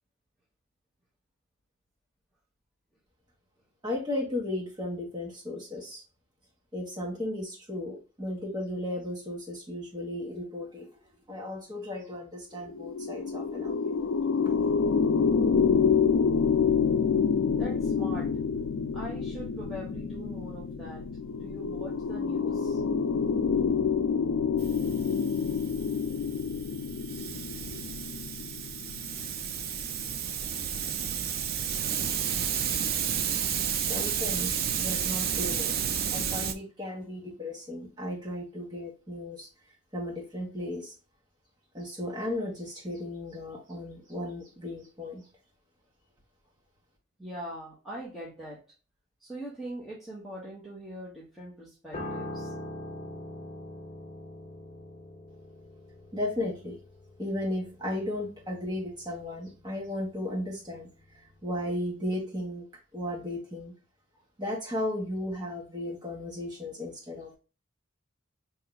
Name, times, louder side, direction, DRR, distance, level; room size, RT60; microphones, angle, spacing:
voice 1, 3.8-6.0 6.7-10.9 11.3-14.1 33.8-39.5 39.9-40.9 41.7-45.2 56.1-56.8 57.2-60.9 61.2-62.6 62.9-63.7 64.4-67.3, left 1 dB, 20° right, -2 dB, 1.4 m, -35 dB
sound 1, 12.6-30.1, left 6 dB, 80° left, 0.4 m, -28 dB
voice 2, 17.5-18.3 18.9-21.0 21.4-22.8 47.2-48.6 49.2-52.5, right 1 dB, ahead, -6 dB, 1.0 m, -41 dB
Hiss, 24.6-36.5, right 8 dB, 45° right, 0.4 m, -32 dB
Piano, 51.9-61.3 61.6-61.8, left 1 dB, 30° left, 0.9 m, -43 dB
5.6 x 2.9 x 2.2 m, 0.33 s
head